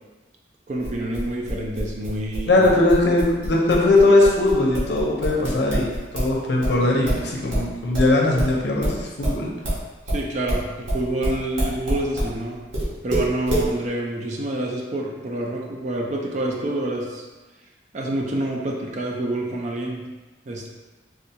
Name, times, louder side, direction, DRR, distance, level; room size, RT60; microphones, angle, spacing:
voice 1, 0.7-2.7 10.1-12.6 13.0-17.2 17.9-20.1 20.5-20.7, right 1 dB, 40° right, -1 dB, 0.4 m, -27 dB
sound 1, 0.8-6.3 6.6-12.3 12.7-13.7, right 1 dB, 85° right, 1.2 m, -26 dB
voice 2, 2.5-9.5, left 2 dB, 65° left, -2 dB, 0.6 m, -19 dB
3.6 x 2.3 x 2.8 m, 1.2 s
head